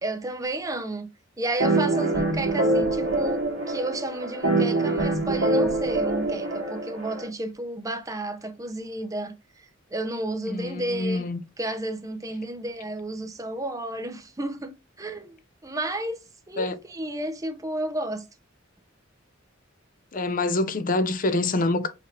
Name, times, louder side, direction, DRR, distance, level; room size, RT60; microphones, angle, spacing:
voice 1, 0.0-1.1 1.4-9.3 9.9-11.2 11.6-15.3 15.6-18.2, right 1 dB, 15° right, 0.6 m, -32 dB
sound 1, 1.6-7.3, right 2 dB, 70° right, 1.7 m, -24 dB
voice 2, 10.5-11.4 16.6-16.8 20.1-21.9, left 2 dB, 45° left, 0.6 m, -26 dB
4.9 x 2.8 x 3.1 m
head